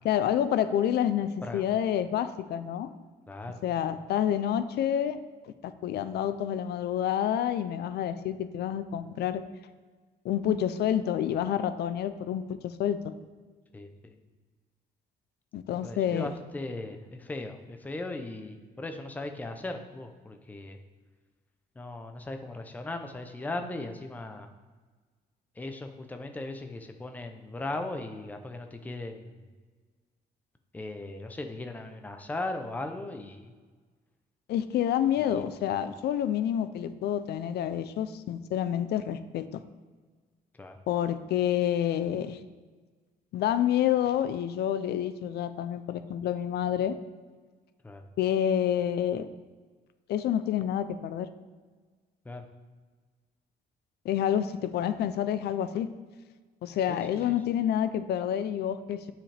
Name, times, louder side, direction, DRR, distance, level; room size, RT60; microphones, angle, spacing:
voice 1, 0.0-2.9 3.6-5.2 5.4-9.4 10.2-13.1 15.5-16.3 34.5-39.5 40.9-42.4 43.3-46.9 48.2-49.3 50.1-51.3 54.0-55.9 56.6-59.1, left 10 dB, 75° left, 11 dB, 0.5 m, -28 dB
voice 2, 3.3-3.6 13.7-14.2 15.8-20.8 21.8-24.5 25.6-29.4 30.7-33.5 35.2-35.4 40.5-40.8 47.8-48.0 52.2-52.5 56.9-57.4, left 2 dB, 10° left, 6 dB, 0.5 m, -38 dB
9.6 x 5.9 x 3.3 m, 1.4 s
cardioid pair, 170°, 17 cm